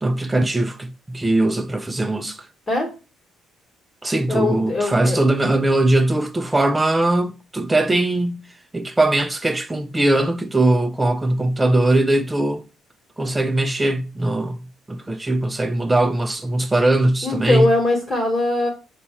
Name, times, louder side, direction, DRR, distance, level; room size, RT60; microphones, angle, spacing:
voice 1, 0.0-2.5 4.0-8.4 8.7-12.6 13.2-17.7, right 2 dB, 10° right, 0.3 m, -20 dB
voice 2, 4.3-5.2 17.2-18.7, left 2 dB, 30° left, 1.2 m, -21 dB
4.1 x 2.3 x 4.2 m
cardioid pair, 120°, 0 cm